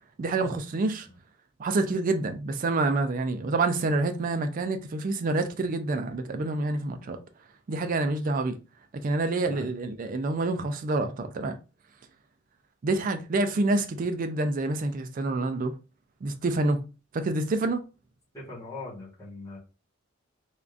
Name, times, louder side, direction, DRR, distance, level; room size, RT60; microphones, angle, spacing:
voice 1, 0.2-1.1 1.6-7.2 7.7-8.6 9.0-11.5 12.8-15.7 16.2-16.8 17.1-17.8, right 2 dB, 40° right, 0.4 m, -27 dB
voice 2, 18.3-19.6, left 2 dB, 15° left, 1.2 m, -41 dB
3.5 x 2.4 x 2.4 m
head